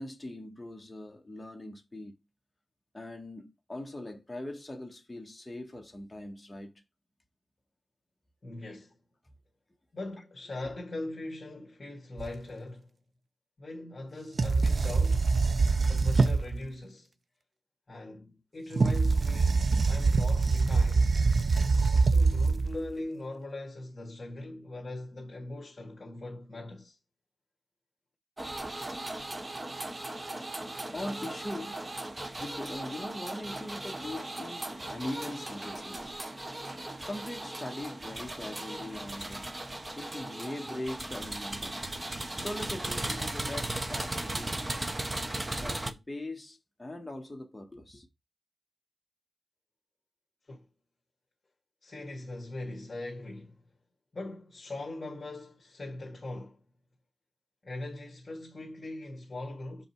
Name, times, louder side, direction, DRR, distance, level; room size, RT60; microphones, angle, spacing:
voice 1, 0.0-2.1 2.9-6.8 8.7-8.8 30.9-32.0 32.4-36.2 37.0-39.6 40.0-44.8 45.4-48.1, left 1 dB, 15° left, 1.5 m, -41 dB
voice 2, 8.4-9.0 9.9-12.9 13.6-15.4 15.9-17.1 17.9-21.2 22.0-27.0 50.5-50.7 51.8-53.7 54.1-56.6 57.6-59.8, left 2 dB, 30° left, 1.9 m, -40 dB
sound 1, 12.2-12.3 14.4-16.6 18.7-22.9, right 4 dB, 50° right, 0.5 m, -24 dB
sound 2, 28.4-45.9, right 1 dB, 25° right, 0.8 m, -37 dB
6.7 x 5.3 x 4.6 m
wide cardioid pair, 125°, 0 cm